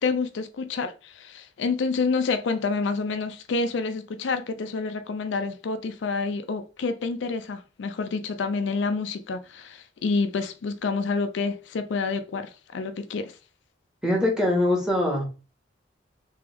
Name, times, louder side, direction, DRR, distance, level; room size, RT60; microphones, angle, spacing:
voice 1, 0.0-13.4, left 4 dB, 65° left, 0.4 m, -28 dB
voice 2, 14.0-15.2, left 1 dB, 5° right, 1.3 m, -22 dB
3.4 x 3.4 x 3.4 m
head